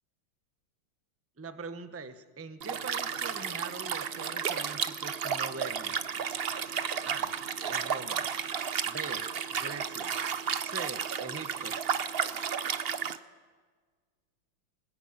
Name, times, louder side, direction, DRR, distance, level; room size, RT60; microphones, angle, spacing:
voice 1, 1.4-6.2 7.0-7.3 7.7-8.3 8.9-9.3 9.5-10.2 10.6-11.8, right 4 dB, 10° right, 10 dB, 0.6 m, -42 dB
Liquid, 2.6-13.2, right 7 dB, 70° right, 0.5 m, -33 dB
23.0 x 19.5 x 9.0 m, 1.5 s
omnidirectional pair, 2.2 m